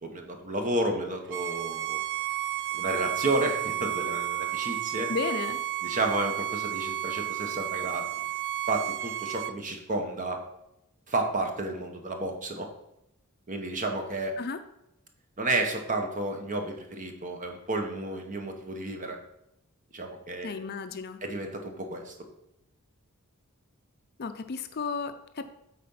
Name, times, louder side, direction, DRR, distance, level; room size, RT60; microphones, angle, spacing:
voice 1, 0.0-2.0 2.7-5.1 5.8-8.2 8.7-10.4 11.1-12.7 13.5-14.3 15.4-19.2 19.9-20.6 21.2-22.1, right 2 dB, 35° right, 4 dB, 1.1 m, -31 dB
Bowed string instrument, 1.3-9.5, right 13 dB, 55° right, 0.4 m, -32 dB
voice 2, 5.1-5.6 14.4-14.6 20.4-21.2 24.2-25.4, left 4 dB, 45° left, 9 dB, 0.5 m, -33 dB
8.3 x 4.3 x 5.5 m, 0.84 s
head